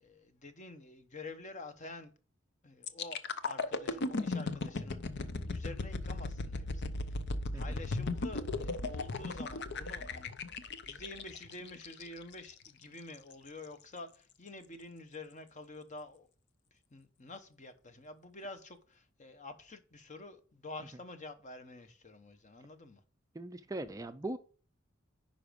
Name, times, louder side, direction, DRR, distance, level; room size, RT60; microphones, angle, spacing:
voice 1, 0.0-2.1 2.6-7.2 7.5-10.3 10.6-16.3 16.7-23.0, left 2 dB, 35° left, 1.0 m, -49 dB
sound 1, 2.8-12.7 13.1-13.3, left 3 dB, 60° left, 0.7 m, -37 dB
voice 2, 23.3-24.4, right 2 dB, 15° right, 0.4 m, -39 dB
9.7 x 5.2 x 5.2 m
head